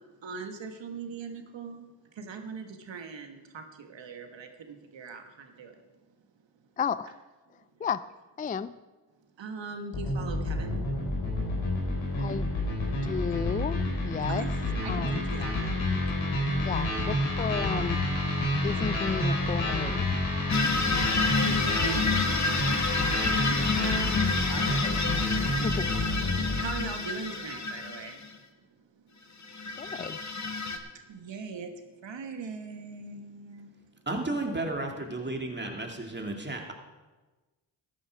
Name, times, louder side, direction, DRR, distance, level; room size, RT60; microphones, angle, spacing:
voice 1, 0.2-1.9 2.1-5.7 9.4-10.8 14.3-14.5 14.8-15.8 21.4-22.9 23.7-25.3 26.5-28.3 31.1-31.7 32.0-33.7, right 4 dB, 70° right, 5 dB, 1.5 m, -40 dB
voice 2, 6.8-7.1 7.8-8.0 8.4-8.7 12.2-12.5 13.0-14.5 14.9-15.2 16.6-18.0 18.6-20.1 23.5-23.7 25.6-25.9 29.8-30.2, left 6 dB, 20° left, 15 dB, 0.3 m, -32 dB
sound 1, 9.9-26.7, left 1 dB, 75° left, 4.1 m, -29 dB
sound 2, 20.5-28.3 29.4-30.8, left 4 dB, 35° left, 1.4 m, -29 dB
voice 3, 34.1-36.7, right 2 dB, 20° right, 2 dB, 2.3 m, -33 dB
14.0 x 10.0 x 4.7 m, 1.2 s
cardioid pair, 55°, 47 cm